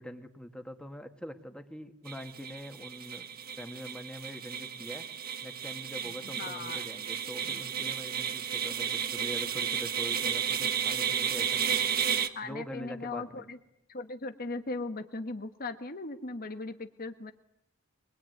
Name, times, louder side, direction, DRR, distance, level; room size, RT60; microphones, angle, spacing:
voice 1, 0.0-3.3 3.6-5.1 5.4-11.8 12.4-13.5, equal, 5° left, 6 dB, 2.1 m, -44 dB
sound 1, 2.1-12.3, right 8 dB, 45° right, 1.5 m, -33 dB
voice 2, 6.0-6.8 7.4-7.6 12.3-13.6 13.9-17.3, left 3 dB, 45° left, 7 dB, 1.5 m, -38 dB
24.0 x 21.0 x 9.5 m, 0.79 s
head